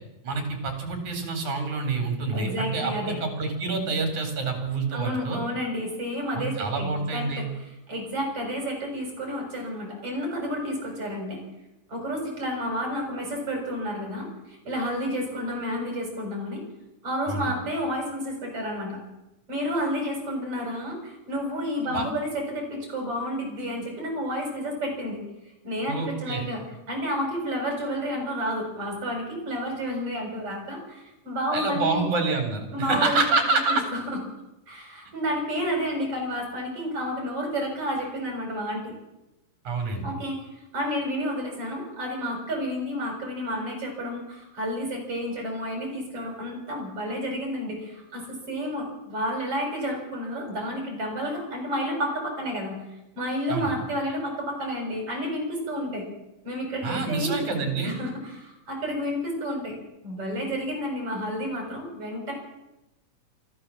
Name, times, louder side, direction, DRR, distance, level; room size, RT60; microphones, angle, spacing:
voice 1, 0.2-5.4 6.3-7.5 17.3-17.5 21.9-22.1 25.9-26.5 31.5-33.8 39.7-40.1 53.5-53.8 56.8-57.9, right 4 dB, 65° right, 5 dB, 5.4 m, -27 dB
voice 2, 2.3-3.2 4.9-7.4 7.9-11.4 11.9-16.6 17.0-19.0 19.5-25.2 25.6-32.1 32.7-33.2 33.7-33.8 34.1-34.2 34.7-38.9 40.0-52.8 53.2-56.0 56.4-57.3 57.8-59.8 60.0-62.3, equal, 45° right, 1 dB, 7.9 m, -30 dB
25.0 x 14.5 x 7.6 m, 0.93 s
omnidirectional pair, 3.7 m